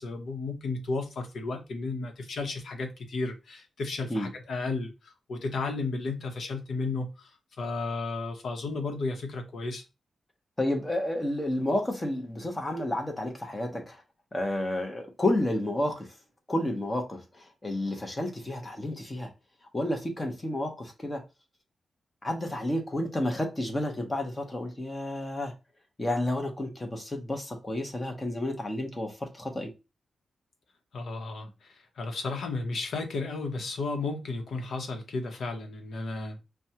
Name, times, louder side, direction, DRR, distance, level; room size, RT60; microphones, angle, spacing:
voice 1, 0.0-7.3 7.6-9.8 30.9-36.4, left 3 dB, 65° left, 0.9 m, -33 dB
voice 2, 10.6-14.0 14.3-16.1 16.5-19.3 19.7-21.2 22.2-25.5 26.0-29.7, left 1 dB, 15° left, 0.9 m, -31 dB
6.0 x 2.3 x 2.8 m
wide cardioid pair, 160°, 0 cm